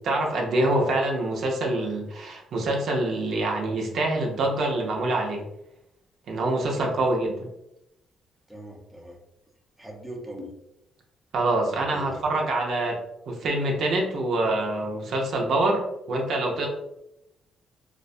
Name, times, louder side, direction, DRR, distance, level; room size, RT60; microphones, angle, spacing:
voice 1, 0.0-5.4 6.3-7.5 11.3-13.0 13.3-16.7, right 2 dB, 70° right, 0 dB, 0.5 m, -25 dB
voice 2, 8.5-9.2 9.8-10.5 11.7-12.3, equal, 5° right, 0 dB, 0.6 m, -40 dB
2.3 x 2.1 x 2.6 m, 0.85 s
cardioid pair, 85°, 0 cm